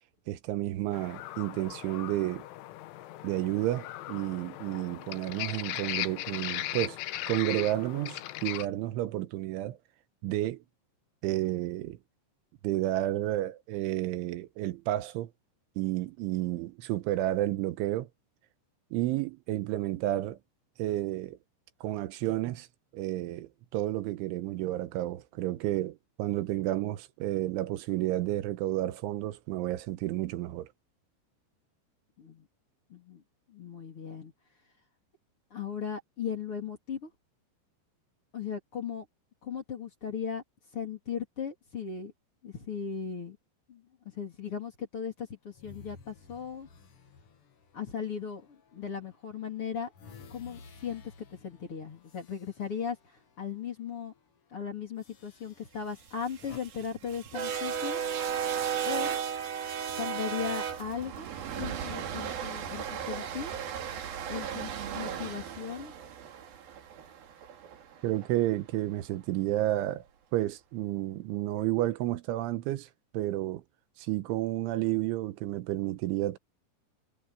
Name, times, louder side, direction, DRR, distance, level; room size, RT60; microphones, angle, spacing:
voice 1, 0.3-2.5 3.2-7.0 7.3-9.8 10.2-10.6 11.2-12.0 12.6-15.3 15.8-18.1 18.9-20.4 20.8-21.4 21.8-22.7 22.9-30.7 68.0-70.1 70.3-72.9 73.1-73.6 74.0-76.4, right 15 dB, 85° right, 3.4 m, -31 dB
sound 1, 0.9-8.7, left 15 dB, 85° left, 3.4 m, -38 dB
voice 2, 32.9-33.2 33.5-34.3 35.5-37.1 38.3-39.1 39.4-40.4 40.7-42.1 42.4-43.4 43.7-43.8 44.1-46.7 47.7-49.9 50.3-53.0 53.4-54.1 54.5-58.0 58.8-59.2 60.0-61.3 61.6-63.6 64.3-65.9, left 7 dB, 30° left, 3.7 m, -37 dB
sound 2, 45.5-48.9 49.3-53.6 53.9-54.2 55.0-56.6, left 4 dB, 60° left, 1.5 m, -54 dB
sound 3, 56.1-68.3, right 8 dB, 55° right, 3.8 m, -35 dB
omnidirectional pair, 5.4 m